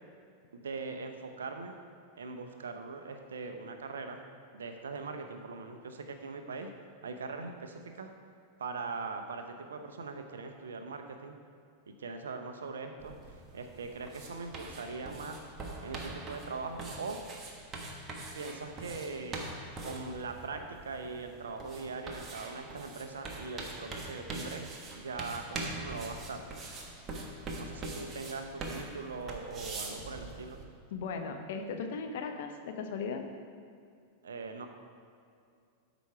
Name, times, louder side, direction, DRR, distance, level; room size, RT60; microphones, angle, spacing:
voice 1, 0.5-1.8 2.2-4.2 4.5-6.7 7.0-8.1 8.6-11.4 11.9-13.2 13.5-15.5 15.8-17.2 18.3-19.5 19.8-26.4 27.6-30.6 34.2-34.7, right 4 dB, 65° right, 5 dB, 0.8 m, -41 dB
sound 1, 13.0-30.6, right 2 dB, 25° right, 1.3 m, -43 dB
voice 2, 30.9-33.2, left 5 dB, 55° left, 5 dB, 0.9 m, -37 dB
12.5 x 5.1 x 4.7 m, 2.4 s
figure-of-eight pair, 90°, 0 cm